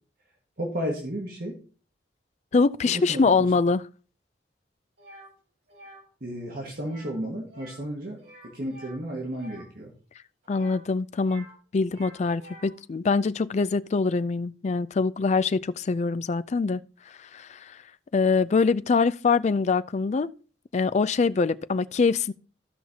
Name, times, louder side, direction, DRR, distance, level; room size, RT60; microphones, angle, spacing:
voice 1, 0.6-1.6 2.8-3.5 6.2-9.9, equal, 55° right, 1.7 m, -33 dB
voice 2, 2.5-3.8 10.5-11.5 11.7-16.8 17.3-17.6 18.1-20.3 20.7-22.3, left 4 dB, 40° left, 0.4 m, -24 dB
sound 1, 5.0-5.3 5.7-6.0 6.8-7.2 7.5-7.9 8.2-9.7 10.4-11.6 11.8-12.8, right 1 dB, 70° right, 4.1 m, -49 dB
15.0 x 5.8 x 2.8 m
head